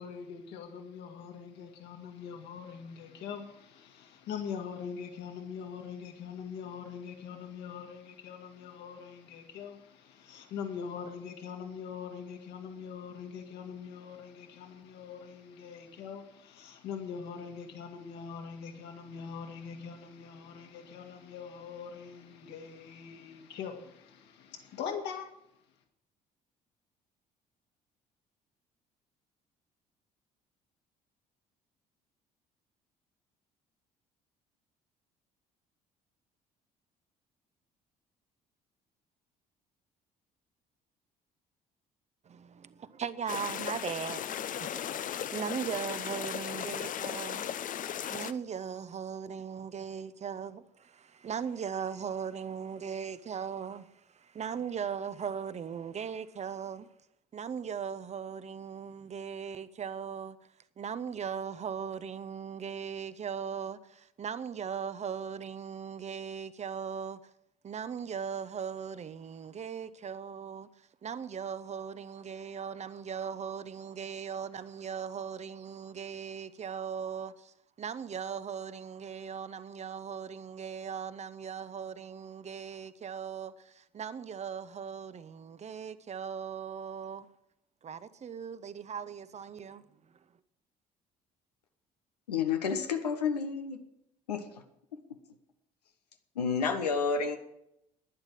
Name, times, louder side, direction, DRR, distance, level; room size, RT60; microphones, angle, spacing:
voice 1, 0.0-25.3, left 7 dB, 60° left, 2.3 m, -42 dB
voice 2, 42.2-44.2 44.7-44.8 45.3-47.5 48.1-56.9 57.3-60.4 60.8-67.2 67.6-70.7 71.0-87.3 87.8-89.8, right 7 dB, 35° right, 0.9 m, -38 dB
sound 1, 43.3-48.3, left 9 dB, 40° left, 0.7 m, -36 dB
voice 3, 92.3-93.8 94.3-94.5 96.4-97.4, left 5 dB, 80° left, 1.0 m, -30 dB
11.5 x 10.5 x 7.5 m
figure-of-eight pair, 50°, 20 cm